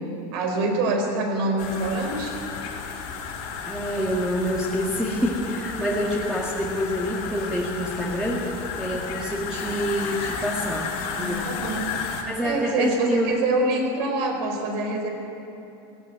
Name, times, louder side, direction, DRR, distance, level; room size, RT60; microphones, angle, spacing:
voice 1, 0.3-2.4 11.2-12.2 12.4-15.1, right 2 dB, 70° right, 3 dB, 4.8 m, -25 dB
sound 1, 1.6-12.2, left 5 dB, 70° left, 4.1 m, -33 dB
voice 2, 3.7-8.5 8.8-11.4 12.2-13.3, equal, 5° right, -5 dB, 2.2 m, -27 dB
17.5 x 16.5 x 9.6 m, 2.8 s
supercardioid pair, 140°, 13 cm